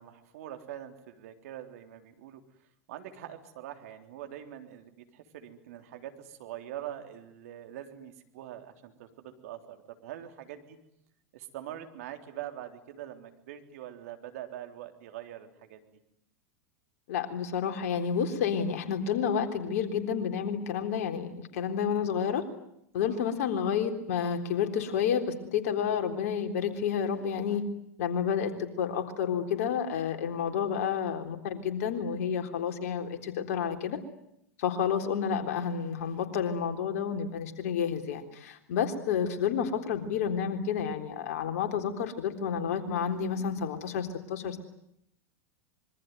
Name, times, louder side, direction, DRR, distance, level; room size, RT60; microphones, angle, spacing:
voice 1, 0.0-2.4 2.9-10.8 11.3-15.8 23.0-23.3 30.5-30.7, right 11 dB, 65° right, 7 dB, 3.7 m, -44 dB
voice 2, 17.1-22.4 22.9-25.2 25.5-27.7 28.0-34.0 34.6-44.6, left 7 dB, 65° left, 6 dB, 3.7 m, -30 dB
26.0 x 23.5 x 9.4 m, 0.77 s
hypercardioid pair, 95°, 9 cm